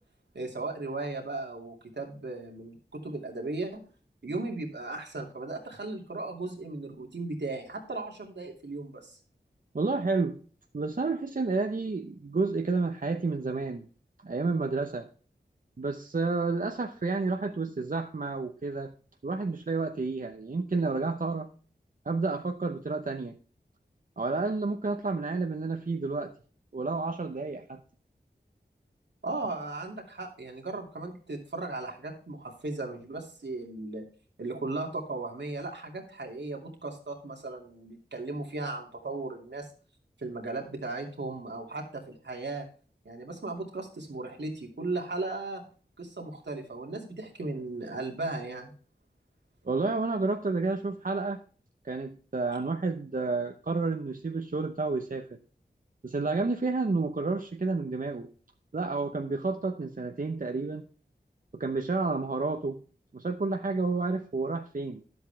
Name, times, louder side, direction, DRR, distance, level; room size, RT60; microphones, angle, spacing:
voice 1, 0.3-3.8 4.2-9.2 29.2-34.0 34.4-39.7 40.2-42.7 43.0-45.6 46.0-48.7, right 2 dB, 75° right, 1 dB, 2.6 m, -36 dB
voice 2, 9.7-10.4 10.7-13.9 14.2-15.1 15.8-18.9 19.2-21.5 22.0-23.4 24.2-26.3 26.7-27.8 49.6-51.4 51.8-55.4 56.0-58.3 58.7-60.9 61.5-62.8 63.1-65.0, right 3 dB, 50° right, 5 dB, 0.9 m, -30 dB
11.0 x 7.9 x 3.4 m, 0.41 s
wide cardioid pair, 45°, 18 cm